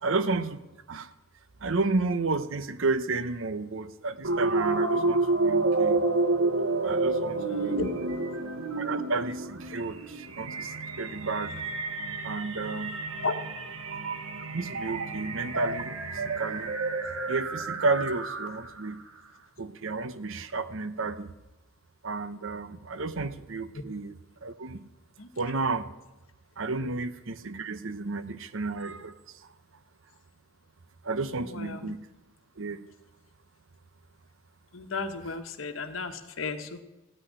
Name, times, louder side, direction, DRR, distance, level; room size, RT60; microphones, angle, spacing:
voice 1, 0.0-0.6 0.9-1.1 1.6-6.0 6.8-7.9 8.8-11.6 12.2-13.2 14.5-16.7 17.3-19.0 19.6-21.3 22.0-24.9 25.4-25.9 26.6-29.2 31.0-32.0 32.6-32.9, right 3 dB, 65° right, 13 dB, 0.8 m, -32 dB
sound 1, 4.2-18.8, right 3 dB, 85° right, 1.3 m, -29 dB
voice 2, 7.4-7.9 13.2-13.4 25.2-25.3 31.4-31.9 34.7-36.8, left 4 dB, 70° left, 8 dB, 1.1 m, -34 dB
15.0 x 6.2 x 9.9 m, 1.0 s
head